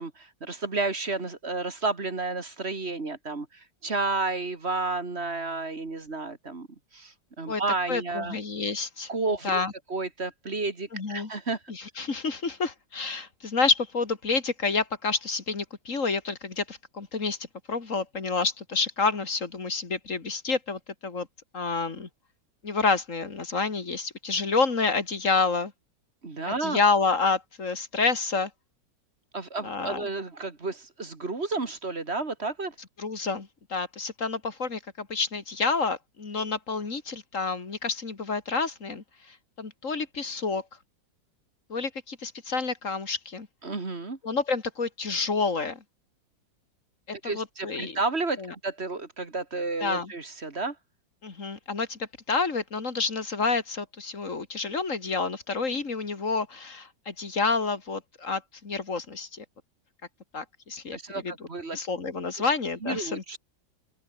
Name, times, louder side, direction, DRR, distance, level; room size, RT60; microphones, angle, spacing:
voice 1, 0.0-6.7 6.9-8.3 9.1-9.6 9.9-11.6 26.2-26.8 29.3-32.7 43.6-44.2 47.2-50.8 60.9-61.8 62.4-62.5 62.8-63.4, right 3 dB, 35° right, 2.5 m, -31 dB
voice 2, 7.9-9.1 9.4-9.7 10.9-11.3 11.7-17.4 17.7-21.3 21.5-22.1 22.6-25.7 26.5-28.5 29.6-30.1 33.0-40.6 41.7-43.5 44.2-45.8 47.2-48.0 48.4-48.5 49.8-50.1 51.2-59.4 60.3-61.0 61.2-61.3 61.7-63.4, left 4 dB, 40° left, 2.7 m, -29 dB
open air
omnidirectional pair, 2.0 m